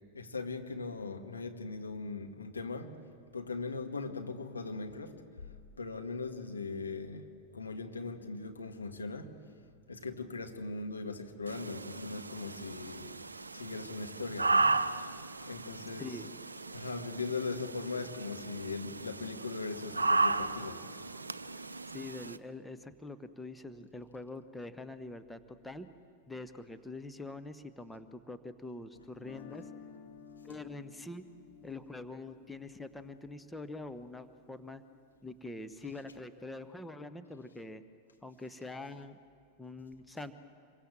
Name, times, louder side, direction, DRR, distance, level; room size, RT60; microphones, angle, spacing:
voice 1, 0.1-3.0 3.3-7.3 7.5-9.4 9.9-14.8 15.5-16.2 16.7-20.8 30.5-30.6, left 4 dB, 75° left, 1.8 m, -40 dB
sound 1, 11.5-22.4, right 3 dB, 80° right, 0.7 m, -35 dB
voice 2, 16.0-16.3 21.9-25.9 26.3-29.7 30.4-31.2 31.6-34.8 35.2-37.8 38.2-39.2 39.6-40.3, left 2 dB, 5° left, 1.1 m, -44 dB
Guitar, 29.1-35.1, left 6 dB, 55° left, 4.1 m, -54 dB
26.5 x 23.0 x 7.6 m
figure-of-eight pair, 90°, 0 cm